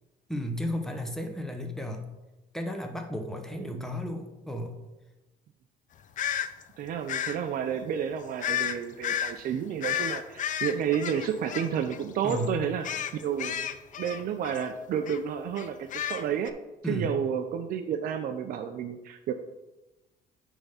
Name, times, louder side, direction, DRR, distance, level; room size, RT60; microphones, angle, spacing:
voice 1, 0.3-2.1 2.5-4.8 12.2-12.6 16.8-17.2, left 1 dB, 5° left, 5 dB, 1.0 m, -33 dB
sound 1, 6.2-6.5 7.1-7.4 8.4-8.8 9.0-9.3 9.8-12.0 12.3-12.5 12.8-14.7 15.1-15.2 15.6-16.5, left 10 dB, 50° left, 0.5 m, -32 dB
voice 2, 6.8-13.7 14.0-16.5 16.8-19.3, right 8 dB, 60° right, 6 dB, 0.5 m, -31 dB
8.8 x 3.6 x 5.6 m, 1.0 s
cardioid pair, 110°, 17 cm